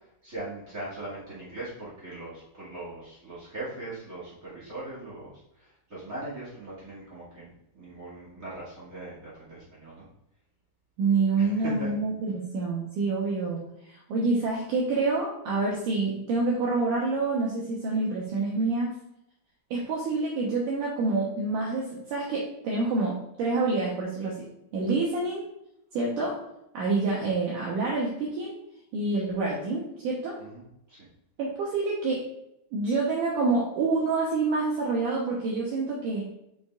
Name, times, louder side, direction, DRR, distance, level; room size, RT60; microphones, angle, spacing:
voice 1, 0.2-10.0 11.4-11.9 30.4-31.1, right 2 dB, 40° right, -7 dB, 1.2 m, -40 dB
voice 2, 11.0-18.9 19.7-24.4 24.7-25.4 25.9-26.4 26.7-28.5 28.9-30.4 31.4-32.3 32.7-36.3, right 3 dB, 80° right, -3 dB, 1.9 m, -27 dB
6.6 x 6.5 x 2.4 m, 0.81 s
omnidirectional pair, 5.0 m